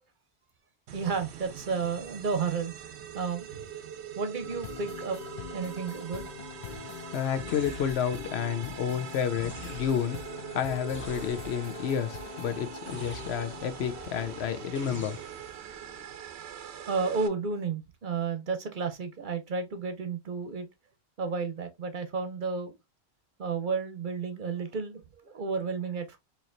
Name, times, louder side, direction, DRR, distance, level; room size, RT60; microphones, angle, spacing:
voice 1, 0.9-2.7 3.1-3.6 4.2-5.2 5.5-6.3 6.7-6.8 16.9-20.7 21.2-22.8 23.4-26.2, right 5 dB, 55° right, 0.8 m, -32 dB
sound 1, 0.9-17.3, right 9 dB, 85° right, 0.9 m, -43 dB
sound 2, 4.4-14.8, left 8 dB, 55° left, 0.5 m, -44 dB
voice 2, 6.9-15.2, left 8 dB, 80° left, 0.9 m, -31 dB
sound 3, 7.5-8.4 9.4-10.3 10.9-11.8 12.9-13.8 14.7-15.7, right 1 dB, 10° left, 1.1 m, -45 dB
4.4 x 2.8 x 2.5 m
omnidirectional pair, 1.1 m